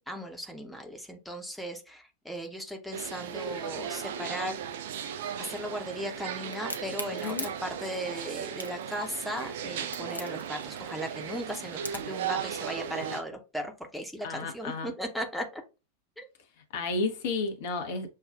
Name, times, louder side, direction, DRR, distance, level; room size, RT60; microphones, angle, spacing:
voice 1, 0.0-4.6 5.4-15.6 16.2-16.3, equal, ahead, 0.8 m, -37 dB
sound 1, 2.9-13.2, right 8 dB, 55° right, 0.5 m, -37 dB
Crack, 6.5-12.2, left 1 dB, 85° left, 0.6 m, -40 dB
voice 2, 14.2-14.9 16.7-18.1, left 3 dB, 50° left, 0.8 m, -32 dB
6.6 x 2.3 x 2.3 m
figure-of-eight pair, 90°, 0 cm